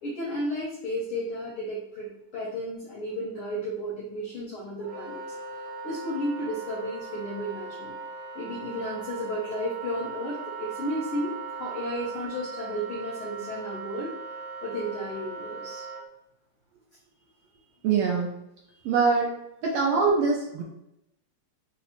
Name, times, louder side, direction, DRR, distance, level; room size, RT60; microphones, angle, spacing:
voice 1, 0.0-5.2 5.8-7.9 8.3-11.3 11.6-14.1 14.6-15.8, equal, 85° left, -5 dB, 1.2 m, -33 dB
Wind instrument woodwind instrument, 4.8-16.0, right 4 dB, 65° right, 1.4 m, -39 dB
voice 2, 17.8-18.4 18.8-19.3 19.6-20.6, right 5 dB, 85° right, -2 dB, 1.3 m, -23 dB
4.6 x 2.0 x 2.9 m, 0.83 s
omnidirectional pair, 3.3 m